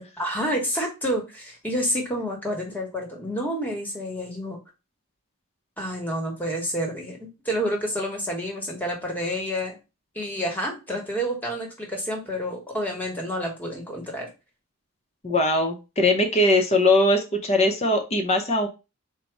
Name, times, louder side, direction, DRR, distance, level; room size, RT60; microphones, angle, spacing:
voice 1, 0.0-4.6 5.8-9.8 10.1-14.3, equal, 10° left, 1 dB, 1.1 m, -29 dB
voice 2, 15.2-18.7, left 1 dB, 30° left, 3 dB, 0.7 m, -21 dB
4.0 x 2.2 x 4.6 m, 0.28 s
head